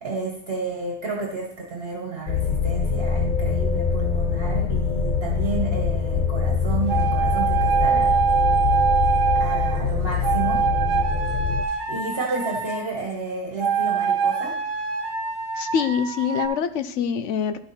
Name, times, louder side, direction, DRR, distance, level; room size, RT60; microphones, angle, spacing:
voice 1, 0.0-8.2 9.3-10.7 11.7-14.6, right 3 dB, 55° right, -1 dB, 1.6 m, -31 dB
sound 1, 2.3-11.6, left 6 dB, 55° left, 0.5 m, -24 dB
sound 2, 6.9-9.8 10.2-12.9 13.6-16.5, right 6 dB, 80° right, 1.1 m, -24 dB
voice 2, 15.5-17.6, left 7 dB, 75° left, 11 dB, 0.9 m, -25 dB
11.0 x 5.9 x 4.2 m, 0.65 s
omnidirectional pair, 1.3 m